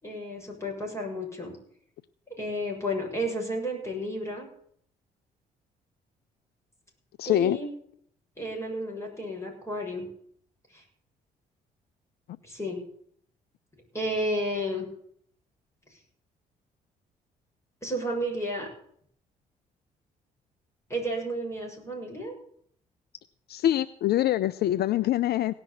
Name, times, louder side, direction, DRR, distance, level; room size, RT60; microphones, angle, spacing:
voice 1, 0.0-1.5 2.3-4.5 7.2-7.7 8.4-10.1 10.7-10.8 12.4-12.8 13.9-14.9 17.8-18.7 20.9-22.3, equal, 15° left, -1 dB, 7.5 m, -32 dB
voice 2, 7.2-7.6 23.5-25.5, left 12 dB, 65° left, 17 dB, 0.5 m, -24 dB
18.0 x 6.1 x 8.5 m, 0.64 s
supercardioid pair, 55°, 18 cm